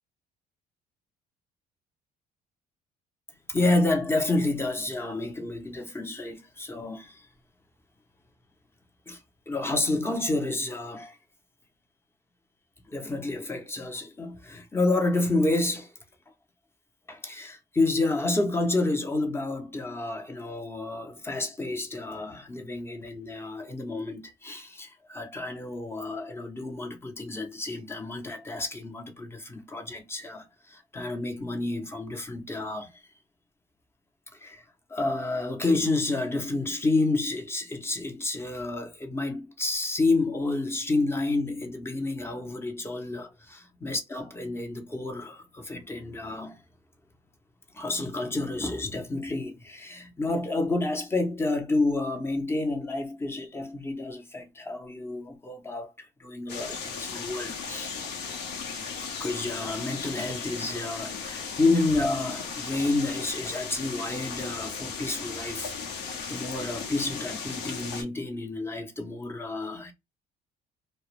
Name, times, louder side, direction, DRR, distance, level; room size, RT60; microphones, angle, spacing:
voice 1, 3.5-7.3 9.1-9.2 9.5-11.2 12.9-15.9 17.1-32.9 34.4-34.6 34.9-46.6 47.7-58.0 59.2-69.9, left 2 dB, 15° left, 0.6 m, -29 dB
sound 1, 56.5-68.0, left 5 dB, 80° left, 0.8 m, -36 dB
2.2 x 2.0 x 3.0 m
cardioid pair, 110°, 17 cm